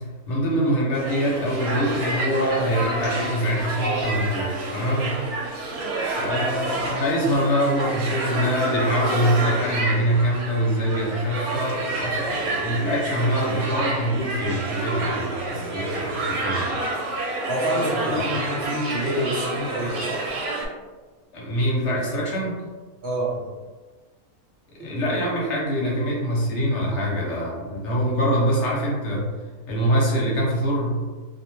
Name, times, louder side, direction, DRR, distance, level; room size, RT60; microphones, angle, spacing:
voice 1, 0.3-5.1 6.2-16.8 18.1-18.2 21.3-22.6 24.8-29.3 29.7-31.0, equal, 60° left, -3 dB, 0.9 m, -24 dB
sound 1, 0.9-20.7, right 2 dB, 85° right, 1.1 m, -28 dB
voice 2, 17.2-20.2 23.0-23.5 24.8-24.9 26.9-27.1, right 1 dB, 70° right, -6 dB, 0.6 m, -28 dB
2.4 x 2.2 x 2.9 m, 1.3 s
omnidirectional pair, 1.5 m